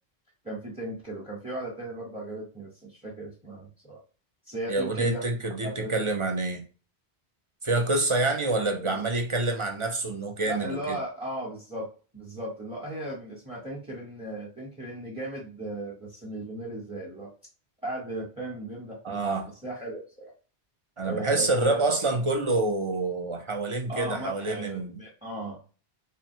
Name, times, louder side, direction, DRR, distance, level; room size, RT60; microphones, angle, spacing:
voice 1, 0.4-4.0 4.5-5.2 5.6-5.9 8.6-9.0 10.5-11.9 12.1-17.3 17.8-19.2 19.6-20.3 21.0-21.8 23.9-25.6, right 1 dB, 5° right, 0.8 m, -36 dB
voice 2, 4.7-6.6 7.6-11.0 19.0-19.5 21.0-25.0, right 2 dB, 35° right, 0.5 m, -27 dB
3.7 x 2.1 x 4.3 m
omnidirectional pair, 1.1 m